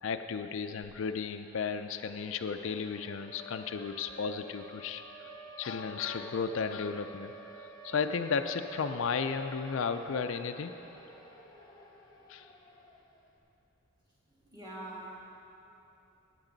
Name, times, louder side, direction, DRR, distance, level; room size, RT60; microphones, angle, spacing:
voice 1, 0.0-5.3 5.6-7.3 7.8-10.7 12.3-12.5, left 5 dB, 65° left, 8 dB, 0.4 m, -34 dB
Siren, 1.2-13.3, right 1 dB, 20° left, 1.1 m, -50 dB
voice 2, 14.5-15.2, right 1 dB, 20° right, -7 dB, 2.4 m, -43 dB
16.0 x 9.2 x 3.9 m, 2.9 s
head